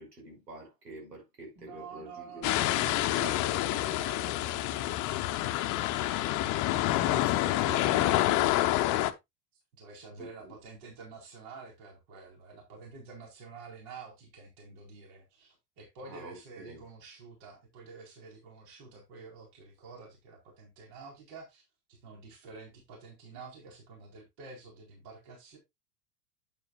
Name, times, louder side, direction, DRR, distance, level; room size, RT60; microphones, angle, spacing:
voice 1, 0.0-3.3 7.0-8.5 10.2-10.5 16.0-16.8, right 1 dB, 80° right, 5.5 m, -46 dB
voice 2, 1.6-6.9 7.2-7.5 9.8-21.6 21.9-25.6, right 4 dB, 55° right, 4.3 m, -49 dB
sound 1, 2.4-9.1, left 15 dB, 40° left, 0.9 m, -28 dB
9.1 x 9.0 x 2.4 m
hypercardioid pair, 90°, 48 cm